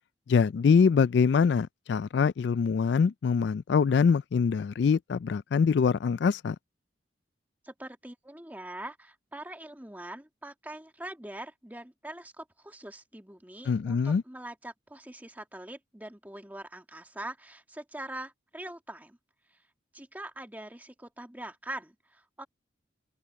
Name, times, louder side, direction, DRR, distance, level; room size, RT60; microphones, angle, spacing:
voice 1, 0.3-6.6 13.7-14.2, left 5 dB, 65° left, 0.3 m, -24 dB
voice 2, 7.6-19.2 19.5-19.6 19.9-22.5, right 1 dB, 10° right, 1.8 m, -43 dB
open air
head